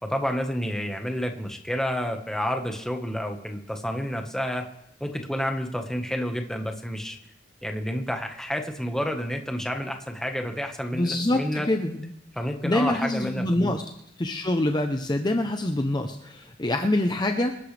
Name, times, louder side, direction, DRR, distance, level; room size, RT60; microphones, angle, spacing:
voice 1, 0.0-4.7 5.0-7.2 7.6-11.7 12.3-13.8, equal, 5° left, 4 dB, 1.4 m, -29 dB
voice 2, 10.9-12.1 12.6-13.8 14.2-17.6, left 1 dB, 25° left, 5 dB, 0.8 m, -25 dB
26.5 x 11.0 x 3.4 m, 0.80 s
head